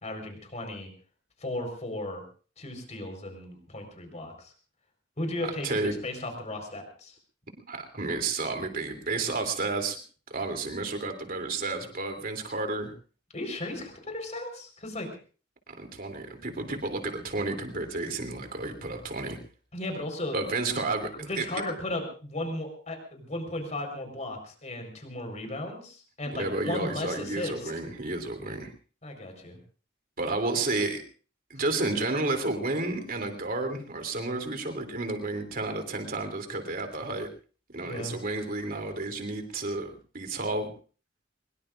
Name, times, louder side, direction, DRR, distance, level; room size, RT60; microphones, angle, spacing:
voice 1, 0.0-0.9 1.4-2.2 2.6-4.5 5.2-7.1 13.3-15.1 19.7-20.4 21.2-27.7 29.0-29.6 37.8-38.2, left 1 dB, 40° left, 5 dB, 4.6 m, -35 dB
voice 2, 5.4-5.9 7.7-10.0 10.3-12.9 15.7-19.4 20.3-21.4 26.2-28.7 30.2-31.0 31.5-37.3 37.7-40.7, right 3 dB, 50° right, 4 dB, 3.2 m, -31 dB
23.5 x 22.0 x 2.6 m, 0.38 s
head